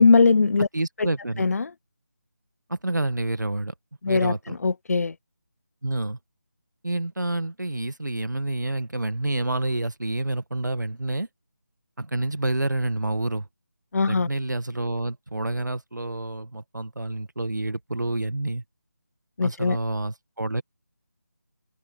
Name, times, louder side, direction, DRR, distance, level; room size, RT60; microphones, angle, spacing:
voice 1, 0.0-0.7 1.0-1.1 1.4-1.7 4.0-5.1 13.9-14.3 19.4-19.8, left 4 dB, 55° left, 0.5 m, -20 dB
voice 2, 0.7-1.5 2.7-3.7 4.1-4.6 5.8-6.2 6.8-11.3 12.0-13.5 14.1-18.6 19.4-20.6, right 2 dB, 85° right, 1.8 m, -28 dB
figure-of-eight pair, 160°, 10 cm